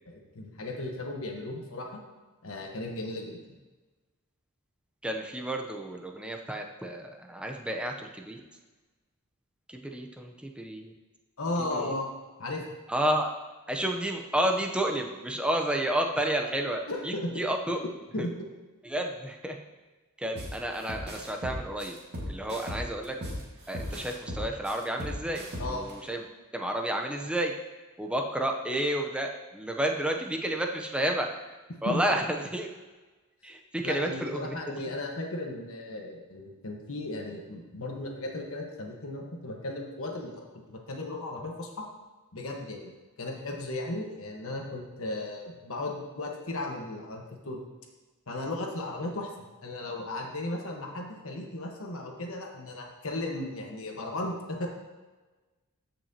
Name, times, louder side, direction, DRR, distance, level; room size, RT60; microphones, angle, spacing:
voice 1, 0.1-2.0 2.4-3.4 11.4-12.1 12.4-12.6 16.9-17.3 18.1-18.3 25.6-25.8 31.8-32.0 33.8-41.8 42.3-42.9 43.2-47.6 48.3-49.3 49.6-54.7, left 2 dB, 65° left, 1 dB, 1.3 m, -35 dB
voice 2, 5.0-8.4 9.7-10.9 11.7-11.9 12.9-13.3 13.7-17.8 18.2-18.3 18.8-19.6 20.2-21.9 22.3-23.1 23.7-26.2 26.5-27.5 28.0-31.3 31.8-32.7 33.4-34.5, right 1 dB, 5° right, 2 dB, 0.7 m, -31 dB
sound 1, 20.4-20.5 20.9-23.4 23.7-25.9, equal, 50° right, 1.9 m, -37 dB
14.0 x 5.9 x 2.9 m, 1.2 s
head